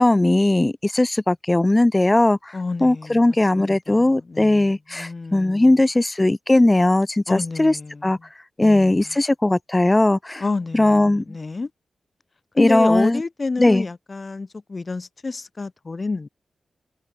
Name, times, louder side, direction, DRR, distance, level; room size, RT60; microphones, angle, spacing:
voice 1, 0.0-7.8 8.0-8.2 8.6-10.4 10.7-11.2 12.6-13.2 13.6-13.8, left 2 dB, 15° left, 1.9 m, -18 dB
voice 2, 2.5-5.8 7.3-8.1 8.6-9.0 10.4-11.7 12.6-16.3, left 3 dB, 30° left, 1.9 m, -29 dB
wide cardioid pair, 125°, 0 cm